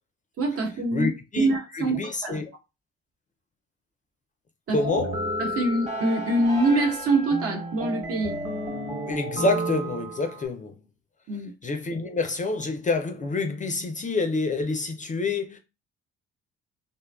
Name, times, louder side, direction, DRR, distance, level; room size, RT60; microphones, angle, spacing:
voice 1, 0.4-1.1 1.4-2.4 4.7-4.8 5.4-8.3 11.3-11.5, right 2 dB, 55° right, 1.0 m, -24 dB
voice 2, 0.9-2.5 4.7-5.1 9.0-10.7 11.6-15.6, left 3 dB, 25° left, 0.4 m, -27 dB
sound 1, 4.8-10.5, right 1 dB, 20° right, 1.0 m, -32 dB
2.5 x 2.2 x 2.2 m
supercardioid pair, 65°, 29 cm